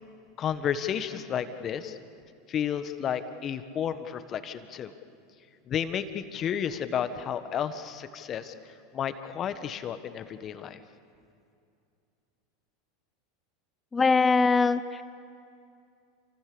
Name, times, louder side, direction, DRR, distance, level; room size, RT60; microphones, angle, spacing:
voice 1, 0.4-2.0 2.5-4.9 5.7-8.5 8.9-10.8, left 8 dB, 40° left, 10 dB, 1.5 m, -32 dB
voice 2, 13.9-15.0, left 4 dB, 20° left, 14 dB, 0.8 m, -22 dB
28.5 x 26.0 x 7.0 m, 2.5 s
hypercardioid pair, 85°, 0 cm